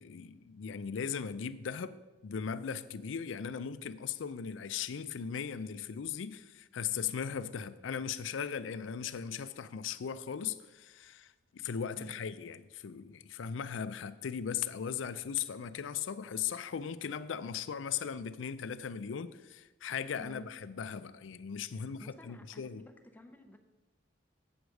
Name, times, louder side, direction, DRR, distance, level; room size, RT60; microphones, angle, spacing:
voice 1, 0.0-22.8, left 7 dB, 90° left, 0.4 m, -38 dB
voice 2, 20.2-20.5 21.7-23.6, equal, 10° left, 0.6 m, -53 dB
8.0 x 4.8 x 6.4 m
head